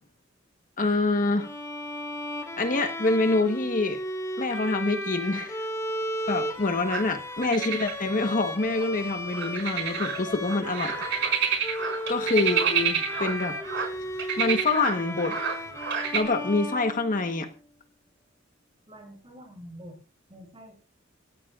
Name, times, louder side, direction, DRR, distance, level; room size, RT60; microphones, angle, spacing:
voice 1, 0.8-1.5 2.6-4.0 4.4-5.7 6.3-10.9 12.1-13.6 14.4-15.4 16.1-17.5, left 3 dB, 45° left, 6 dB, 1.2 m, -26 dB
Bowed string instrument, 1.4-17.5, equal, 15° left, 3.0 m, -35 dB
sound 1, 6.8-7.0 7.4-13.9 14.2-16.2, right 7 dB, 65° right, 4.7 m, -29 dB
voice 2, 18.9-20.0 20.3-20.7, equal, 25° right, 1 dB, 7.7 m, -46 dB
28.0 x 14.0 x 2.5 m, 0.37 s
head